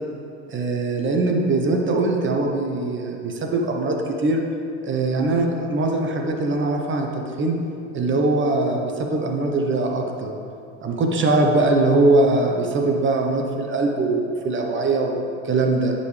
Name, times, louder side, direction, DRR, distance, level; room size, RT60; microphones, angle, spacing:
voice 1, 0.5-4.4 4.8-7.5 7.9-10.3 10.8-15.9, right 2 dB, 35° right, 2 dB, 1.0 m, -21 dB
11.5 x 5.3 x 3.3 m, 2.6 s
hypercardioid pair, 85°, 36 cm